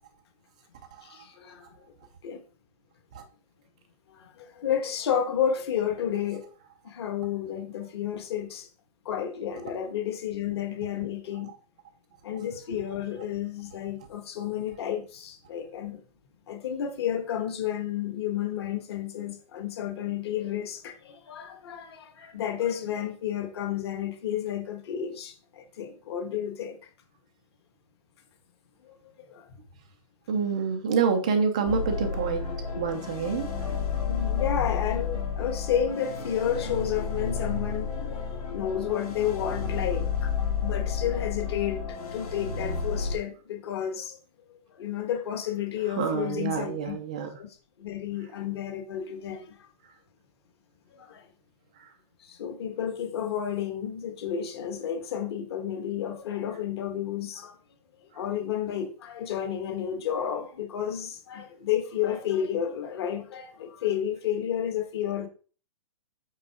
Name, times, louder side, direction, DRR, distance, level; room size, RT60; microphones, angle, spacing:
voice 1, 1.0-1.6 2.2-2.4 4.1-6.4 6.8-8.7 9.0-11.5 12.2-16.0 16.5-26.8 28.8-28.9 29.3-29.5 34.1-37.9 38.5-40.3 40.6-44.2 44.5-46.9 47.4-47.5 47.8-49.5 50.9-51.2 52.2-57.5 58.1-65.3, left 9 dB, 40° left, 1.3 m, -31 dB
voice 2, 30.3-32.5 32.8-33.5 46.0-47.3, right 6 dB, 10° right, 0.3 m, -27 dB
sound 1, 31.7-43.2, left 6 dB, 65° left, 2.6 m, -31 dB
7.6 x 3.7 x 4.6 m
hypercardioid pair, 175°, 20 cm